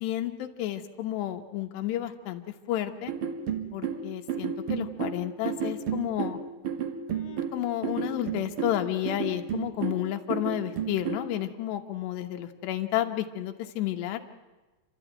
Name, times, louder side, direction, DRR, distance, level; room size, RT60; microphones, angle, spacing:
voice 1, 0.0-2.4 2.7-3.1 3.7-6.4 7.1-14.2, left 13 dB, 85° left, 6 dB, 3.4 m, -31 dB
sound 1, 3.1-11.3, right 7 dB, 55° right, 1.5 m, -32 dB
29.0 x 13.0 x 9.1 m, 1.2 s
omnidirectional pair, 4.8 m